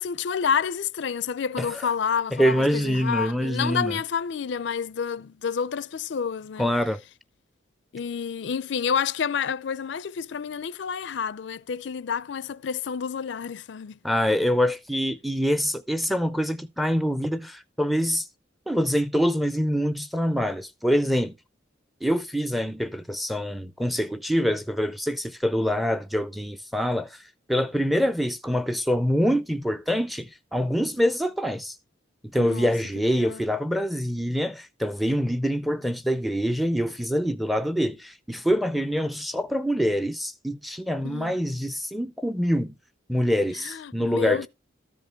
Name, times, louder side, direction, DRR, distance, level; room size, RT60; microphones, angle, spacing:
voice 1, 0.0-6.7 7.9-14.0 32.4-33.4 41.0-41.4 43.5-44.5, left 6 dB, 65° left, 0.4 m, -29 dB
voice 2, 1.6-1.9 2.3-4.0 6.6-7.0 14.0-18.3 18.7-21.3 22.0-27.2 27.5-31.8 32.3-42.7 43.1-44.5, equal, ahead, 0.4 m, -25 dB
13.0 x 5.1 x 4.5 m
head